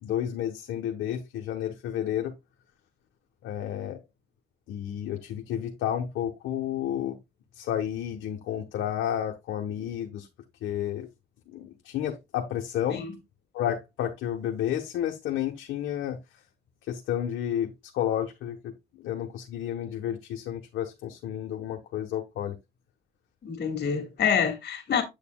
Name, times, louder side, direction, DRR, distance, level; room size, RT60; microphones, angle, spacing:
voice 1, 0.0-2.3 3.4-4.0 4.7-7.2 7.5-10.3 10.6-11.1 11.5-13.0 13.5-16.2 16.8-22.6, left 10 dB, 85° left, 1.1 m, -31 dB
voice 2, 23.4-25.0, left 7 dB, 55° left, 2.1 m, -27 dB
8.3 x 6.7 x 2.3 m
cardioid pair, 90°, 20 cm